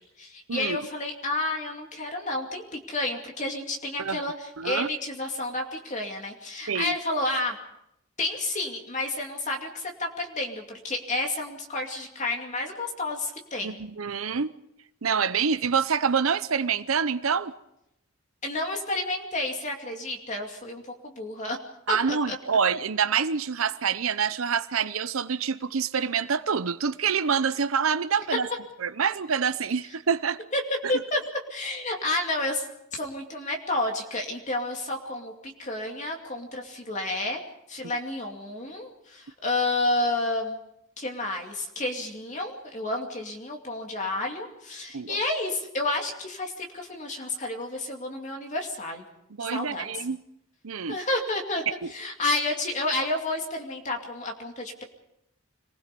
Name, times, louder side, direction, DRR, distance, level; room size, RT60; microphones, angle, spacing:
voice 1, 0.2-7.6 8.2-13.8 18.4-21.6 21.9-22.4 30.5-30.6 30.9-31.2 31.5-32.7 32.9-37.4 37.7-40.6 41.0-49.0 49.5-50.0 50.9-51.6 51.9-54.8, left 2 dB, 35° left, 2.6 m, -30 dB
voice 2, 4.6-4.9 6.7-6.9 13.6-14.5 15.0-17.5 21.9-28.5 28.8-30.4 44.9-45.2 49.4-50.2 50.6-51.0 51.8-51.9, right 6 dB, 85° right, 0.8 m, -26 dB
26.0 x 20.5 x 5.4 m
head